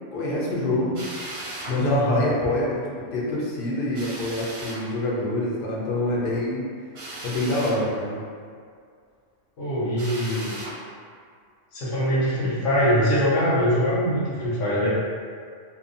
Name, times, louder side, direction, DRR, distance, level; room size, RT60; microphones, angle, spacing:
voice 1, 0.1-0.9 1.6-2.8 3.1-6.6 7.2-8.2, left 1 dB, 60° left, -5 dB, 0.7 m, -25 dB
Drill, 0.9-1.8 3.9-4.8 6.9-7.8 9.9-10.8, right 2 dB, 60° right, 0.8 m, -36 dB
voice 2, 1.8-2.1 9.6-10.6 11.7-14.9, equal, 75° left, -8 dB, 1.0 m, -23 dB
2.6 x 2.2 x 2.5 m, 2.2 s
omnidirectional pair, 1.3 m